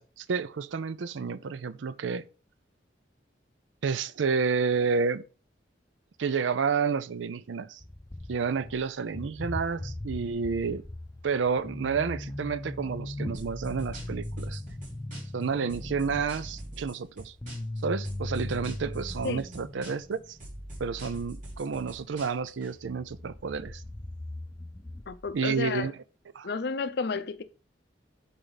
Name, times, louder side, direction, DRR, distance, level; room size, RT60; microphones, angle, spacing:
voice 1, 0.0-2.2 3.8-5.2 6.2-7.8 8.3-10.8 11.2-14.6 15.3-17.3 17.8-20.4 20.8-23.8 25.3-25.9 26.3-26.5, right 5 dB, 80° right, 0.5 m, -30 dB
sound 1, 7.8-8.8 9.1-21.2 22.4-22.5 22.7-25.3, left 1 dB, 15° left, 0.6 m, -39 dB
sound 2, 13.3-15.4 15.7-17.8 18.0-20.1 20.4-22.7, right 1 dB, 45° right, 3.9 m, -43 dB
voice 2, 25.1-25.9 26.4-27.4, left 4 dB, 60° left, 0.5 m, -31 dB
7.9 x 4.1 x 3.9 m
head